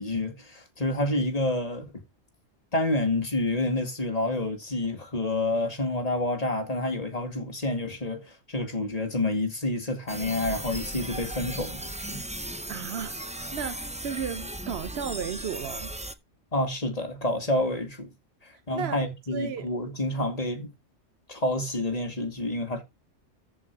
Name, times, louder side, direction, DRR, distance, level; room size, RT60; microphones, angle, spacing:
voice 1, 0.0-1.9 2.7-12.2 16.5-18.1 18.4-20.7 21.3-22.8, left 1 dB, 30° left, 2.3 m, -28 dB
sound 1, 10.1-16.1, right 1 dB, 10° right, 0.4 m, -36 dB
voice 2, 12.7-15.9 18.7-19.0 19.3-19.7, right 7 dB, 60° right, 1.0 m, -34 dB
14.0 x 5.1 x 4.7 m
omnidirectional pair, 1.3 m